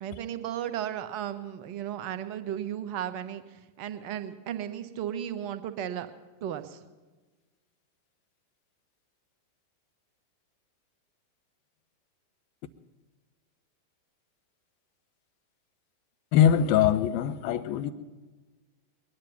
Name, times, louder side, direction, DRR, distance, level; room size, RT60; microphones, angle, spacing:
voice 1, 0.0-6.1 6.4-6.8, right 10 dB, 45° right, 9 dB, 1.1 m, -35 dB
voice 2, 16.3-17.9, left 9 dB, 45° left, 10 dB, 0.8 m, -22 dB
21.5 x 10.5 x 5.8 m, 1.2 s
figure-of-eight pair, 90°, 0 cm